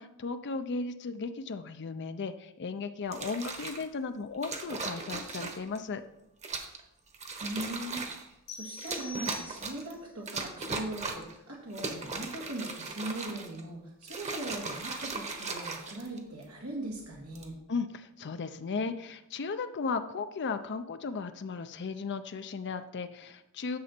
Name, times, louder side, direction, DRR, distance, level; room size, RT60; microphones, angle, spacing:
voice 1, 0.0-6.0 17.7-23.8, left 4 dB, 55° left, 9 dB, 0.5 m, -36 dB
sound 1, 3.0-3.8 4.4-5.8 6.4-6.8 7.1-8.3 8.8-9.9 10.3-11.3 11.7-13.6 14.0-16.4 17.2-17.5, right 3 dB, 30° right, 1.2 m, -38 dB
voice 2, 7.4-17.6, right 1 dB, 85° right, -3 dB, 1.8 m, -40 dB
sound 2, 8.5-10.0, left 2 dB, 75° left, 1.8 m, -44 dB
10.5 x 7.0 x 4.4 m, 0.83 s
head